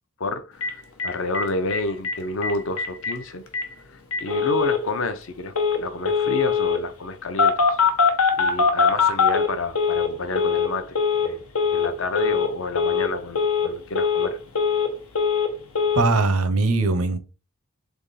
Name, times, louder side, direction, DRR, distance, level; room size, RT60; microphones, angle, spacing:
voice 1, 0.2-3.4 4.2-7.8 8.4-11.0 11.2-11.4 11.7-14.4, left 2 dB, 60° left, 0.6 m, -29 dB
Telephone, 0.6-0.7 1.0-1.1 1.3-1.4 1.7-2.1 2.4-2.5 2.8-3.1 3.5-3.6 4.1-4.8 5.5-5.8 6.0-6.8 7.4-10.1 10.3-10.7 10.9-11.3 11.5-11.9 12.1-12.5 12.7-13.1 13.3-13.7 13.9-14.9 15.1-15.5 15.7-16.0, left 5 dB, 85° left, 1.0 m, -21 dB
voice 2, 15.9-17.2, right 3 dB, 80° right, 0.7 m, -20 dB
3.8 x 3.5 x 4.0 m
head